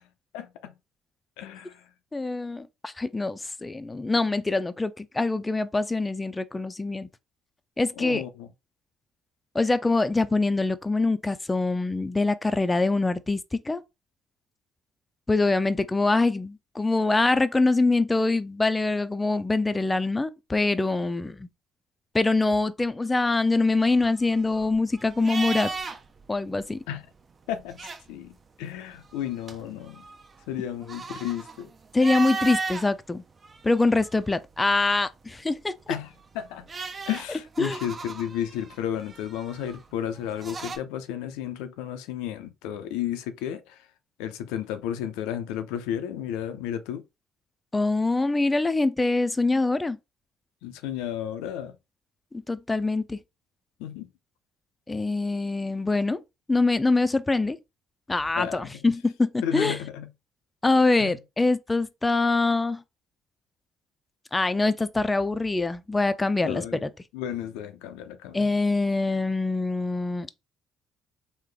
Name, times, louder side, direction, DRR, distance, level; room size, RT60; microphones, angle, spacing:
voice 1, 0.3-0.7 1.4-1.8 8.0-8.5 26.9-27.0 27.5-27.8 28.1-30.0 30.5-31.7 35.9-36.6 37.1-43.9 44.2-47.0 50.6-51.7 53.8-54.1 58.4-58.9 59.4-60.1 61.0-61.2 66.4-66.8 67.1-68.4, left 10 dB, 85° left, 0.4 m, -33 dB
voice 2, 2.1-7.1 7.8-8.2 9.5-13.8 15.3-21.5 22.1-25.7 26.3-26.8 31.9-33.2 33.6-35.9 37.6-37.8 47.7-50.0 52.5-53.2 54.9-56.2 56.5-57.6 58.1-59.8 60.6-62.8 64.3-66.9 68.3-70.3, left 3 dB, 20° left, 0.4 m, -24 dB
sound 1, 23.7-26.2 26.5-26.7 27.5-28.4 28.9-32.9 33.4-34.4 35.9-40.8, right 4 dB, 40° right, 0.6 m, -36 dB
3.3 x 2.1 x 3.7 m
supercardioid pair, 60°, 0 cm